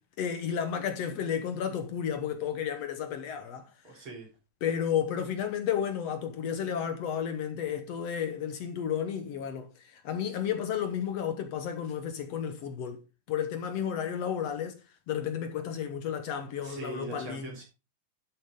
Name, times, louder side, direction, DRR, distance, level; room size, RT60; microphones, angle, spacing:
voice 1, 0.2-3.7 4.6-13.0 13.3-14.8 15.1-17.5, left 8 dB, 65° left, 1.8 m, -32 dB
voice 2, 3.8-4.3 16.6-17.6, right 3 dB, 40° right, 4.1 m, -41 dB
12.0 x 7.7 x 3.6 m
omnidirectional pair, 3.6 m